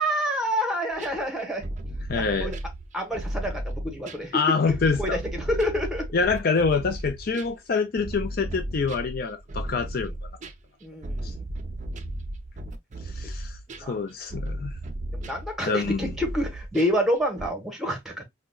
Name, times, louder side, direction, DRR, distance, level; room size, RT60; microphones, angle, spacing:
voice 1, 0.0-1.7 2.1-2.6 2.9-4.4 4.7-6.0 10.0-10.1 10.8-11.4 13.7-14.0 15.1-18.2, equal, ahead, 1.1 m, -28 dB
sound 1, 0.9-4.3 4.7-17.5, right 1 dB, 40° right, 0.5 m, -35 dB
voice 2, 2.1-2.5 4.3-5.2 6.1-10.1 13.1-13.6 13.9-14.7 15.6-16.1, left 4 dB, 55° left, 0.5 m, -26 dB
4.8 x 2.2 x 2.3 m
head